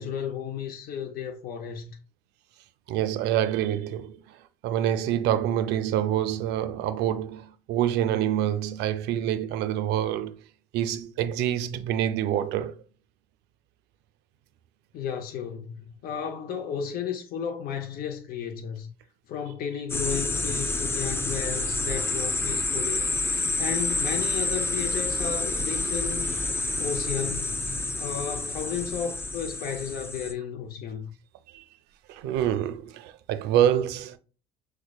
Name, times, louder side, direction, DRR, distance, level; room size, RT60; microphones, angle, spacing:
voice 1, 0.0-2.0 14.9-18.9 19.3-26.3 26.8-27.6 28.0-31.1, left 7 dB, 60° left, 0.6 m, -33 dB
voice 2, 2.9-10.4 10.7-12.8 31.5-31.7 32.1-34.2, right 11 dB, 90° right, 0.4 m, -26 dB
sound 1, 19.9-30.3, left 2 dB, 15° left, 0.4 m, -28 dB
6.0 x 2.1 x 2.3 m
cardioid pair, 110°, 17 cm